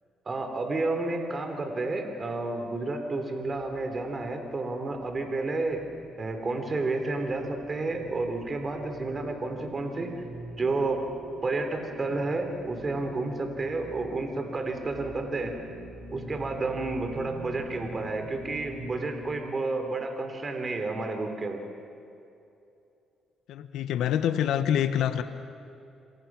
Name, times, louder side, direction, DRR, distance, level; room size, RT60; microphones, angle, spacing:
voice 1, 0.2-5.8 6.2-10.2 10.6-11.0 11.4-15.5 16.1-21.6, right 3 dB, 35° right, 5 dB, 3.2 m, -31 dB
sound 1, 3.4-19.4, right 2 dB, 60° right, 3.8 m, -45 dB
voice 2, 23.5-25.2, left 9 dB, 85° left, 10 dB, 1.1 m, -26 dB
27.5 x 24.0 x 6.2 m, 2.7 s
cardioid pair, 90°, 0 cm